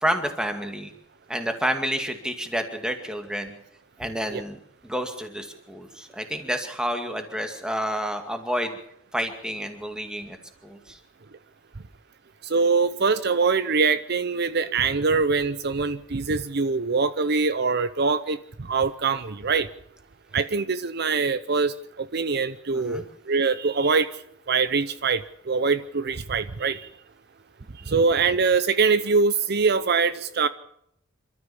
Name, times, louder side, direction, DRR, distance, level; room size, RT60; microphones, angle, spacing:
voice 1, 0.0-0.9 1.3-3.5 4.0-8.8 9.1-10.4 10.6-11.0 22.7-23.0, equal, 5° right, 5 dB, 2.3 m, -29 dB
voice 2, 12.4-19.7 20.3-26.9 27.9-30.5, right 4 dB, 50° right, 13 dB, 0.7 m, -23 dB
27.5 x 13.5 x 7.2 m, 0.71 s
head